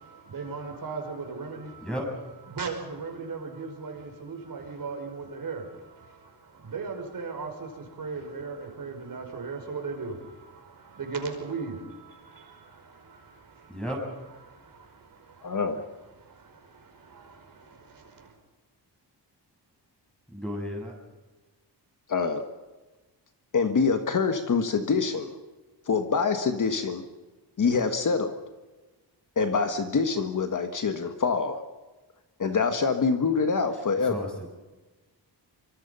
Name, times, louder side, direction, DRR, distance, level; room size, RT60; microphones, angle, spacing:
voice 1, 0.0-1.9 2.4-13.8 14.4-15.6 16.2-18.3, right 4 dB, 50° right, 3 dB, 5.2 m, -38 dB
voice 2, 15.4-15.8 22.1-22.4 23.5-25.3 25.9-27.0 27.6-28.4 29.3-31.6 32.4-34.3, left 5 dB, 45° left, 7 dB, 1.6 m, -25 dB
voice 3, 20.3-20.9 34.0-34.5, equal, ahead, 1 dB, 6.9 m, -33 dB
25.5 x 24.5 x 5.6 m, 1.2 s
wide cardioid pair, 135°, 43 cm